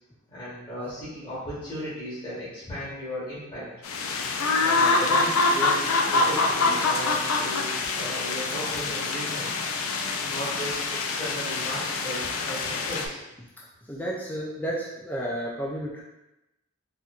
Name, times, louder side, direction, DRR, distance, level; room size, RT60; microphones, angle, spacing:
voice 1, 0.3-3.7 4.6-5.8 6.1-9.5 10.2-13.2, equal, 25° left, -12 dB, 1.1 m, -36 dB
sound 1, 3.8-13.1, left 3 dB, 80° left, 0.4 m, -25 dB
voice 2, 13.9-16.0, right 1 dB, 10° left, -5 dB, 0.4 m, -32 dB
4.3 x 2.5 x 2.4 m, 0.94 s
head